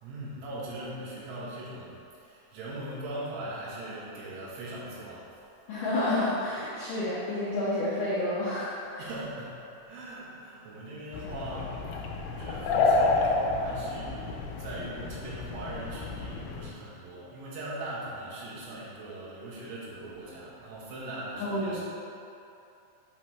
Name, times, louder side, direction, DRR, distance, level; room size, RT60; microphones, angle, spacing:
voice 1, 0.0-5.3 9.0-11.8 12.3-21.8, right 1 dB, 80° right, -7 dB, 3.7 m, -40 dB
voice 2, 5.7-9.0 21.4-21.8, left 1 dB, 75° left, -10 dB, 2.0 m, -30 dB
sound 1, 11.1-16.7, left 3 dB, 90° left, 3.0 m, -29 dB
8.8 x 3.2 x 5.8 m, 2.8 s
omnidirectional pair, 5.3 m